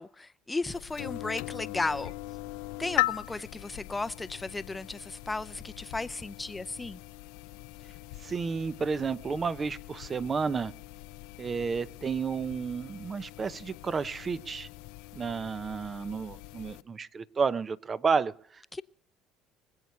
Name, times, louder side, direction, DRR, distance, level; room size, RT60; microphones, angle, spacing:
voice 1, 0.0-2.1 2.8-7.0 18.7-18.8, left 3 dB, 15° left, 0.6 m, -35 dB
sound 1, 0.7-16.8, left 20 dB, 80° left, 0.5 m, -40 dB
voice 2, 8.2-10.7 11.4-14.7 15.1-18.6, right 5 dB, 30° right, 0.7 m, -31 dB
24.5 x 8.2 x 4.6 m
supercardioid pair, 85°, 0 cm